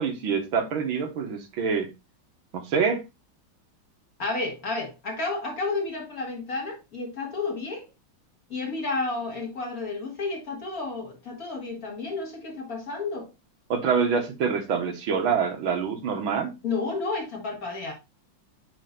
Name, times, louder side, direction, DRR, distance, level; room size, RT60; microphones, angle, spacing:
voice 1, 0.0-1.9 2.5-3.0 13.7-16.5, right 6 dB, 75° right, 2.0 m, -26 dB
voice 2, 4.2-7.9 8.5-13.3 16.6-17.9, left 3 dB, 45° left, 2.5 m, -31 dB
8.9 x 3.3 x 3.8 m
omnidirectional pair, 2.3 m